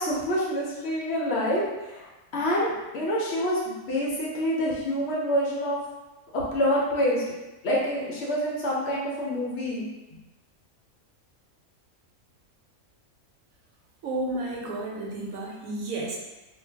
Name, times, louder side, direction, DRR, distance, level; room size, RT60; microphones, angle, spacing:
voice 1, 0.0-5.8 6.3-7.2 7.6-9.8, equal, 60° left, -5 dB, 0.8 m, -27 dB
voice 2, 14.0-16.2, right 2 dB, 80° right, -2 dB, 1.0 m, -32 dB
2.4 x 2.2 x 3.2 m, 1.1 s
omnidirectional pair, 1.4 m